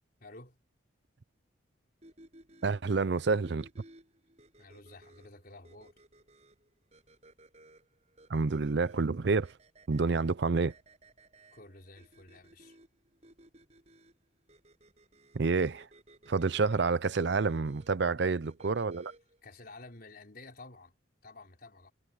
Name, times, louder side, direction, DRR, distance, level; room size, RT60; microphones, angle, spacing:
voice 1, 0.2-0.6 4.6-5.9 11.5-12.8 16.4-16.8 19.4-20.9 21.2-21.9, left 2 dB, 50° left, 4.9 m, -51 dB
sound 1, 2.0-19.4, right 1 dB, 35° right, 7.9 m, -59 dB
voice 2, 2.6-3.7 8.3-9.5 9.9-10.7 15.3-15.9 16.3-19.1, right 4 dB, 60° right, 0.5 m, -28 dB
head